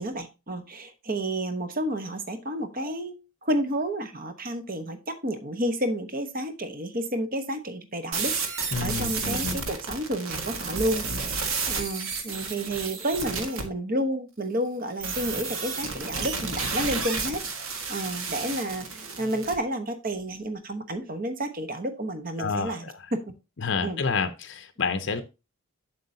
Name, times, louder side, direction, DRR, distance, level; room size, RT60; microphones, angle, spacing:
voice 1, 0.0-3.1 3.4-23.2 23.8-24.0, right 1 dB, 40° right, 8 dB, 1.1 m, -31 dB
sound 1, 8.1-13.6 15.0-19.5, right 4 dB, 65° right, 1.6 m, -31 dB
voice 2, 8.7-9.5 22.4-22.9 23.6-25.2, left 5 dB, 55° left, 10 dB, 0.6 m, -29 dB
7.7 x 7.6 x 2.7 m, 0.27 s
head